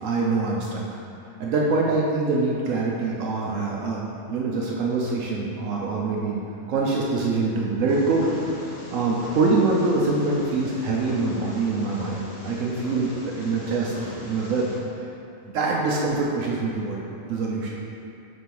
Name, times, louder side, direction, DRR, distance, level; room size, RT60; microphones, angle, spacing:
voice 1, 0.0-1.0 1.4-6.4 6.7-8.3 8.6-13.9 14.2-14.7 15.0-15.1 15.4-17.0 17.3-17.7, right 3 dB, 70° right, -3 dB, 1.0 m, -24 dB
Purr, 7.9-14.8, left 1 dB, 65° left, 1.4 m, -40 dB
4.6 x 4.2 x 5.3 m, 2.6 s
omnidirectional pair, 1.4 m